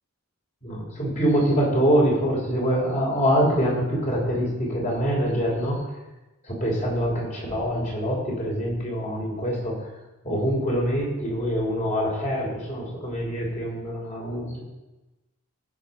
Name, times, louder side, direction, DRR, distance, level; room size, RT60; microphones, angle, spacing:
voice 1, 0.6-5.8 6.4-9.9 10.2-14.6, equal, 35° left, -3 dB, 3.4 m, -24 dB
14.5 x 5.2 x 5.4 m, 1.0 s
head